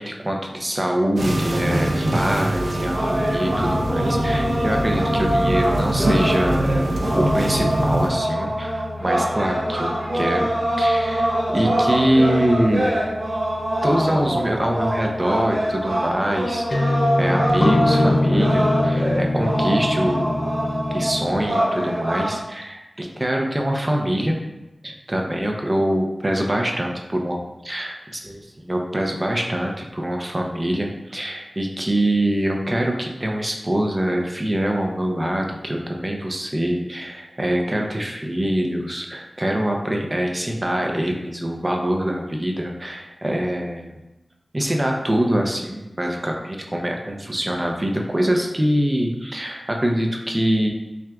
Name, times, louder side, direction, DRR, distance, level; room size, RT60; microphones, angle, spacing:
voice 1, 0.0-6.7 7.1-10.5 10.8-12.9 13.8-20.4 20.9-24.3 24.8-26.9 27.2-27.4 27.6-43.9 44.5-50.7, right 1 dB, 25° right, 1 dB, 0.5 m, -24 dB
sound 1, 1.2-8.1, right 1 dB, 75° right, 0.5 m, -23 dB
sound 2, 2.9-22.4, right 1 dB, 90° right, 1.1 m, -24 dB
sound 3, 3.5-21.5, left 2 dB, 45° left, 0.3 m, -27 dB
5.8 x 2.4 x 2.3 m, 1.0 s
wide cardioid pair, 65°, 0 cm